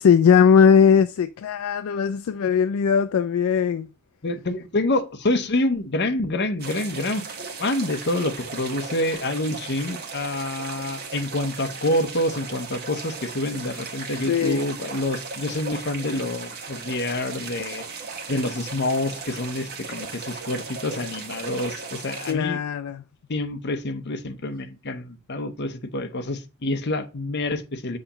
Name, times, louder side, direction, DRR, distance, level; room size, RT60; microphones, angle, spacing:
voice 1, 0.0-3.9 14.2-14.7 22.3-23.0, left 7 dB, 65° left, 0.3 m, -19 dB
voice 2, 4.2-7.3 7.6-17.8 18.3-22.6 23.3-28.0, left 1 dB, 50° left, 0.8 m, -27 dB
sound 1, 6.6-22.3, right 4 dB, 45° right, 1.3 m, -36 dB
7.6 x 2.9 x 5.5 m
head